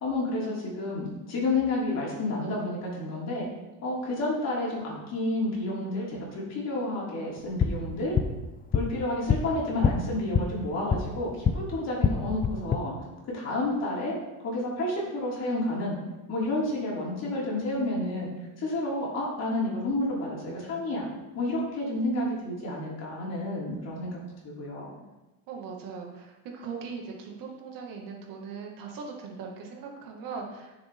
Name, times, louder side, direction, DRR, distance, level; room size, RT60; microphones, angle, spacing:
voice 1, 0.0-3.5 3.8-8.2 8.7-12.9 13.3-14.2 14.4-16.0 16.3-18.3 18.6-21.1 21.4-24.9, left 2 dB, 45° left, -5 dB, 3.3 m, -30 dB
sound 1, 7.4-11.6 11.9-12.8, left 6 dB, 25° left, 0.6 m, -27 dB
voice 2, 25.5-30.7, right 5 dB, 60° right, 1 dB, 2.2 m, -39 dB
10.0 x 6.8 x 3.8 m, 1.1 s
cardioid pair, 125°, 38 cm